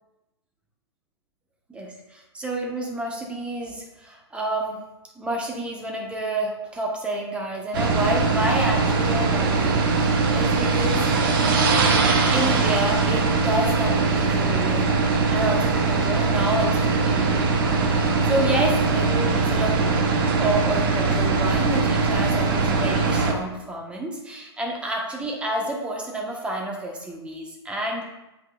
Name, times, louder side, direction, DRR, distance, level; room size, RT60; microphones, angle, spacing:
voice 1, 1.7-4.8 5.1-11.1 12.3-15.0 15.3-20.0 20.3-28.0, right 1 dB, 10° right, -1 dB, 1.1 m, -29 dB
sound 1, 7.7-23.3, right 4 dB, 50° right, 0.9 m, -21 dB
7.9 x 5.1 x 2.4 m, 1.0 s
hypercardioid pair, 125°, 14 cm